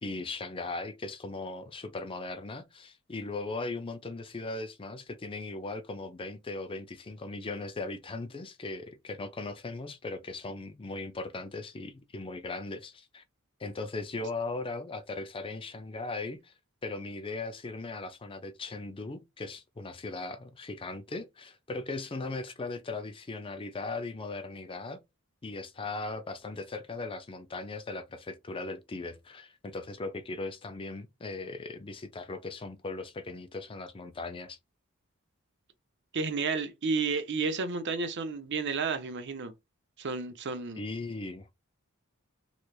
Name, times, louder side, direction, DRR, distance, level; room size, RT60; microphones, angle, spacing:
voice 1, 0.0-13.2 13.6-16.5 16.8-25.0 25.4-34.6 40.8-41.5, left 3 dB, 25° left, 0.4 m, -38 dB
voice 2, 36.1-39.5 40.0-40.8, right 4 dB, 55° right, 0.7 m, -31 dB
3.3 x 3.0 x 2.3 m
head